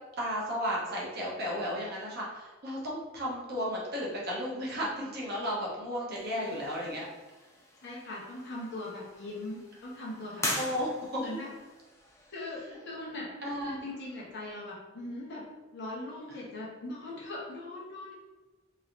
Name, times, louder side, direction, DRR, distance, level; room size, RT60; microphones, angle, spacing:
voice 1, 0.2-7.1 10.6-11.2 13.4-13.8, equal, 50° right, -4 dB, 0.8 m, -34 dB
voice 2, 6.1-6.6 7.8-10.4 11.2-11.5 12.3-13.3 13.6-15.4 15.7-18.1, left 2 dB, 55° left, -5 dB, 0.9 m, -40 dB
sound 1, 6.1-14.5, left 1 dB, 15° left, 0.3 m, -42 dB
3.1 x 2.8 x 2.5 m, 1.2 s
head